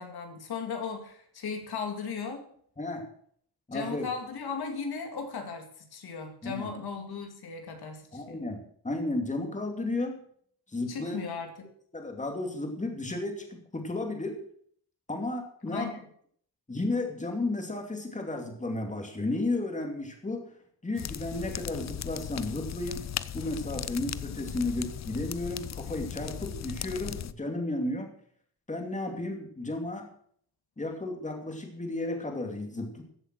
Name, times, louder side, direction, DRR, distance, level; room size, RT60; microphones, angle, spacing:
voice 1, 0.0-2.4 3.7-8.4 10.9-11.7 15.7-15.9, left 5 dB, 80° left, 4 dB, 2.3 m, -37 dB
voice 2, 2.8-3.1 3.7-4.1 6.4-6.7 8.1-10.2 10.7-11.2 11.9-14.4 15.1-15.9 16.7-20.4 20.8-23.1 23.3-28.1 28.7-30.1 30.8-33.0, left 2 dB, 20° left, 3 dB, 2.6 m, -33 dB
sound 1, 21.0-27.3, left 9 dB, 45° left, 0.5 m, -37 dB
14.5 x 8.0 x 6.1 m, 0.62 s
wide cardioid pair, 110°, 38 cm